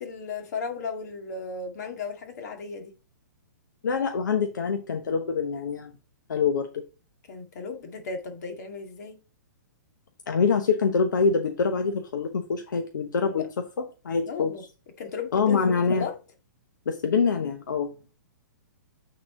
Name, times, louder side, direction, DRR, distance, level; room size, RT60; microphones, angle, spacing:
voice 1, 0.0-2.9 7.3-9.2 13.3-13.5 14.2-14.6 15.0-16.1, left 5 dB, 65° left, 2.1 m, -35 dB
voice 2, 3.8-5.9 6.3-6.8 10.3-13.4 14.0-14.5 15.3-16.1 16.9-17.9, left 5 dB, 85° left, 0.9 m, -25 dB
8.8 x 4.1 x 3.8 m
hypercardioid pair, 150°, 10 cm